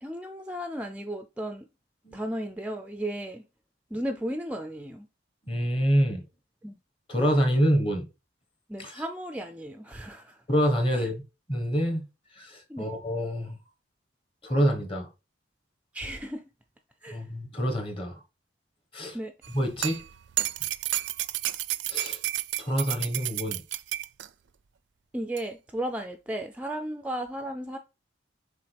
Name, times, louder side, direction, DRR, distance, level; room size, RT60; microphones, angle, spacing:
voice 1, 0.0-1.7 2.1-3.4 3.9-5.1 6.6-6.8 8.7-10.4 10.9-11.1 12.7-12.9 15.9-16.4 17.0-17.2 19.1-19.3 25.1-27.8, right 1 dB, 5° right, 0.4 m, -34 dB
voice 2, 5.5-6.2 7.1-8.0 8.8-9.0 10.5-11.2 11.5-12.0 12.4-13.6 14.4-15.1 17.1-18.2 18.9-19.2 19.5-20.0 21.9-22.2 22.6-23.6, equal, 30° left, 1.2 m, -26 dB
sound 1, 19.4-24.3 25.4-25.5, right 15 dB, 75° right, 0.4 m, -31 dB
6.8 x 4.2 x 3.3 m
head